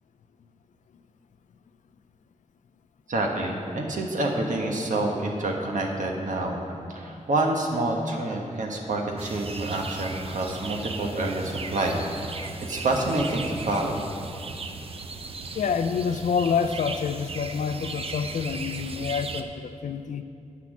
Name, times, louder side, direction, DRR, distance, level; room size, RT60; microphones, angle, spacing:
voice 1, 3.1-6.6 6.9-12.0 12.6-14.0, right 2 dB, 75° right, 1 dB, 1.3 m, -27 dB
sound 1, 9.2-19.4, right 3 dB, 45° right, 0.6 m, -37 dB
voice 2, 15.5-20.2, left 6 dB, 70° left, 9 dB, 0.4 m, -27 dB
8.3 x 5.9 x 7.3 m, 2.6 s
cardioid pair, 70°, 13 cm